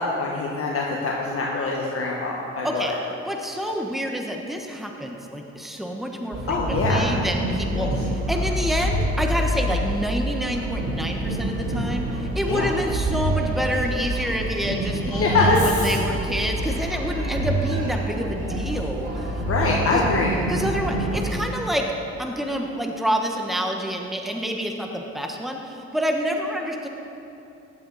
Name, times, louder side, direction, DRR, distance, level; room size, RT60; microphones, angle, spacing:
voice 1, 0.0-2.9 6.5-7.1 7.7-7.9 12.5-12.7 15.0-15.9 19.4-20.3, left 3 dB, 50° left, -3 dB, 1.5 m, -24 dB
voice 2, 3.2-19.4 19.9-20.0 20.5-21.8 22.2-26.9, equal, ahead, 2 dB, 1.2 m, -28 dB
sound 1, 6.3-21.4, right 1 dB, 55° right, 3.4 m, -27 dB
15.0 x 11.0 x 4.1 m, 2.8 s
cardioid pair, 90°, 30 cm